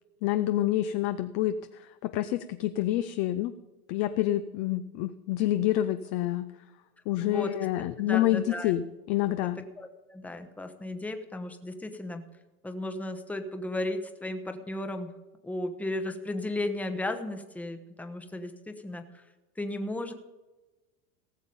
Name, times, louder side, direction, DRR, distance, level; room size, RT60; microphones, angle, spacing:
voice 1, 0.2-3.5 3.9-6.5 7.1-9.6, left 13 dB, 40° left, 11 dB, 0.5 m, -28 dB
voice 2, 7.2-7.5 8.0-8.7 9.4-12.2 12.6-15.1 15.4-19.2 19.6-20.1, left 1 dB, 5° left, 7 dB, 0.9 m, -35 dB
18.0 x 7.1 x 5.3 m, 1.1 s
supercardioid pair, 135°, 45 cm